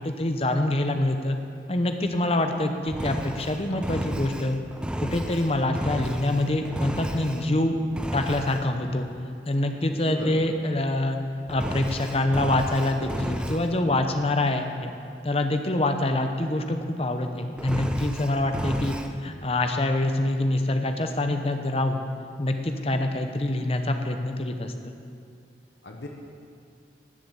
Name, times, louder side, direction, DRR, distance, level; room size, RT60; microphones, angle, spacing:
voice 1, 0.0-1.4 1.7-4.6 5.0-7.8 8.1-9.1 9.5-11.2 11.5-14.9 15.2-22.0 22.4-24.9, left 1 dB, 30° left, 6 dB, 0.8 m, -25 dB
Engine, 2.9-7.6 7.9-8.7 11.5-13.8 17.6-19.1, right 1 dB, 5° right, 0.4 m, -33 dB
voice 2, 9.9-10.5 25.8-26.1, left 1 dB, 70° left, 1 dB, 1.2 m, -37 dB
13.0 x 7.5 x 8.2 m, 2.5 s
head